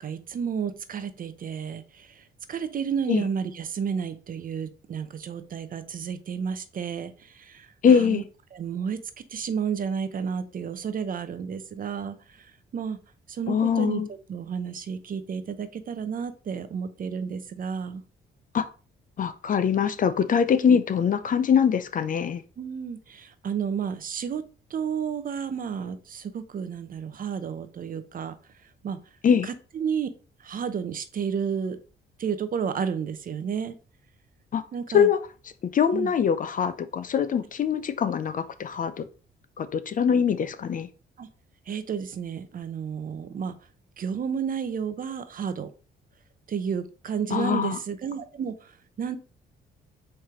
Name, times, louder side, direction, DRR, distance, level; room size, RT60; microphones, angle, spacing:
voice 1, 0.0-8.2 8.5-9.0 9.3-13.0 13.3-14.0 14.3-18.0 22.6-24.4 24.7-28.3 28.8-29.0 29.4-30.1 30.4-31.8 32.2-33.8 34.7-35.1 35.9-36.1 41.2-41.3 41.7-43.5 44.0-45.7 46.5-48.7 49.0-49.2, right 7 dB, 45° right, 0.6 m, -31 dB
voice 2, 7.8-8.3 13.5-14.1 18.5-18.7 19.2-22.4 29.2-29.5 34.5-34.6 34.9-35.2 35.7-39.1 39.6-40.9 47.3-47.8, left 7 dB, 45° left, 0.5 m, -23 dB
4.5 x 3.2 x 3.6 m
cardioid pair, 90°, 20 cm